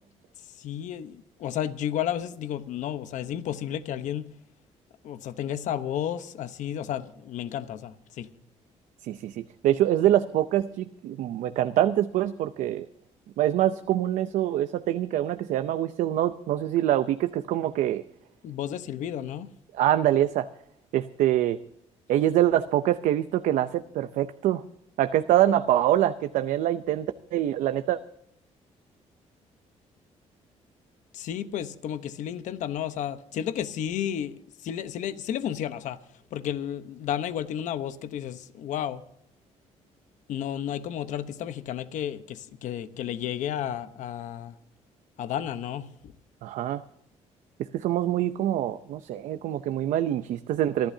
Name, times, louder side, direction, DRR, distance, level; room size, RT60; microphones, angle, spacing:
voice 1, 0.6-4.3 5.0-8.3 18.4-19.5 31.1-34.3 34.6-36.0 36.3-39.0 40.3-44.5 45.2-45.9, left 10 dB, 75° left, 1.0 m, -32 dB
voice 2, 9.0-12.9 13.4-18.0 19.7-20.5 20.9-21.6 22.1-24.6 25.0-28.0 46.4-46.8 47.7-50.9, right 12 dB, 85° right, 0.7 m, -25 dB
28.0 x 12.0 x 2.8 m
cardioid pair, 120°, 13 cm